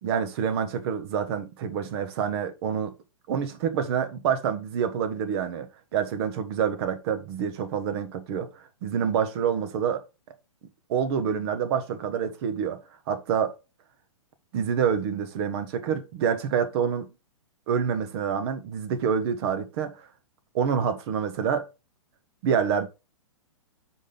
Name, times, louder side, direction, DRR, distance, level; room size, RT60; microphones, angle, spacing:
voice 1, 0.0-2.9 3.3-10.0 10.9-12.8 13.1-13.5 14.5-17.1 17.7-20.1 20.5-21.7 22.4-22.9, right 7 dB, 45° right, 1.3 m, -27 dB
6.2 x 5.0 x 3.8 m
hypercardioid pair, 125°, 18 cm